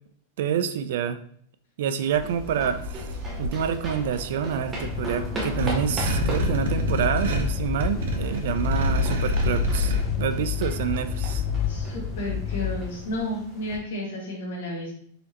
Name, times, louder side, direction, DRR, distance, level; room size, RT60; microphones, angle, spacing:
voice 1, 0.4-1.2 1.8-3.1 3.4-11.4, right 8 dB, 60° right, 11 dB, 0.4 m, -27 dB
sound 1, 2.0-13.8, equal, 10° right, 0.8 m, -38 dB
sound 2, 2.1-10.0, left 1 dB, 80° right, 0.8 m, -29 dB
sound 3, 4.8-13.2, left 8 dB, 25° left, 0.3 m, -30 dB
voice 2, 11.7-14.9, left 1 dB, 75° left, -2 dB, 1.8 m, -32 dB
4.1 x 3.8 x 2.8 m, 0.62 s
supercardioid pair, 175°, 0 cm